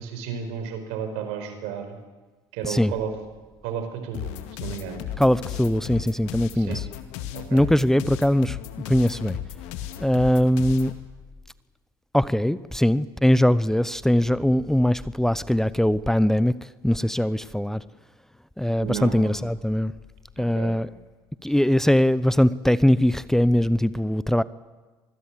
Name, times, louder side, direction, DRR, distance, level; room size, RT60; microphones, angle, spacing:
voice 1, 0.0-2.0 2.5-3.1 3.6-4.3 4.6-5.0 6.5-6.8 7.3-7.6 18.8-19.3 20.4-20.7, right 7 dB, 70° right, 7 dB, 4.8 m, -32 dB
sound 1, 4.1-11.0, left 11 dB, 70° left, 2.1 m, -35 dB
voice 2, 5.2-6.9 7.5-8.6 8.9-9.4 10.0-10.9 12.1-17.8 18.6-19.9 20.4-20.9 21.4-24.4, left 1 dB, 5° left, 17 dB, 0.8 m, -21 dB
sound 2, 9.1-11.6 13.9-16.5 18.7-21.3 23.1-23.8, left 5 dB, 25° left, 4.0 m, -48 dB
25.5 x 21.0 x 7.5 m, 1.3 s
hypercardioid pair, 70°, 12 cm